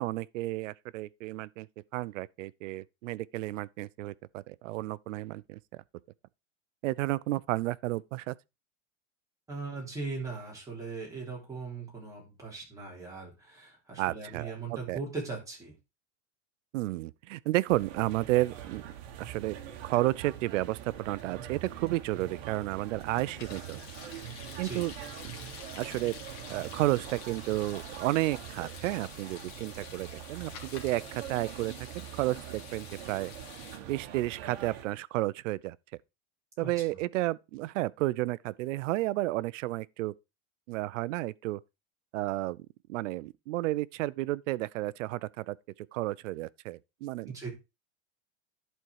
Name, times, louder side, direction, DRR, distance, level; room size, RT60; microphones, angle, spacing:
voice 1, 0.0-1.7 1.9-5.8 6.8-8.3 14.0-14.5 14.9-15.0 16.7-18.8 19.2-19.6 19.8-23.8 24.6-24.9 25.8-26.1 26.5-33.3 33.9-35.8 36.6-40.1 40.7-41.6 42.1-45.6 45.9-47.5, right 18 dB, 80° right, 0.6 m, -32 dB
voice 2, 9.5-15.7 24.6-24.9 36.6-36.7 47.3-47.5, right 4 dB, 10° right, 3.4 m, -39 dB
sound 1, 17.7-34.8, right 10 dB, 55° right, 1.5 m, -44 dB
sound 2, 20.9-22.3 22.7-33.8, left 8 dB, 55° left, 2.0 m, -49 dB
11.0 x 4.5 x 4.7 m
supercardioid pair, 165°, 37 cm